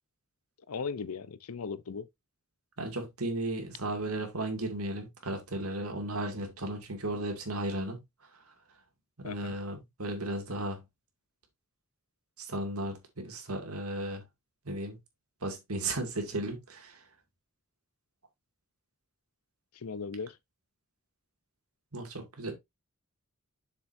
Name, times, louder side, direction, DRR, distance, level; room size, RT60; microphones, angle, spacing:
voice 1, 0.7-2.1 9.2-9.6 19.8-20.4, left 5 dB, 85° left, 0.6 m, -37 dB
voice 2, 2.8-8.0 9.2-10.8 12.5-14.2 14.7-15.0 15.4-16.9 21.9-22.5, right 1 dB, 90° right, 2.3 m, -35 dB
7.2 x 6.9 x 2.6 m
head